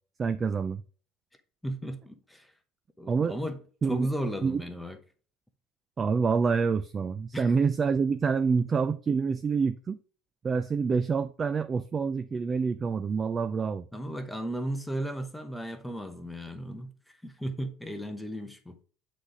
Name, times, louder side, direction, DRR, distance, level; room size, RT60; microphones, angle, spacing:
voice 1, 0.2-0.8 3.1-3.4 3.8-4.1 4.4-4.6 6.0-10.0 10.4-13.9, right 5 dB, 20° right, 0.3 m, -27 dB
voice 2, 1.6-2.5 3.0-3.6 3.9-5.0 7.3-7.5 13.9-16.9 17.2-18.8, right 1 dB, ahead, 0.9 m, -35 dB
8.3 x 4.1 x 4.8 m
cardioid pair, 160°, 0 cm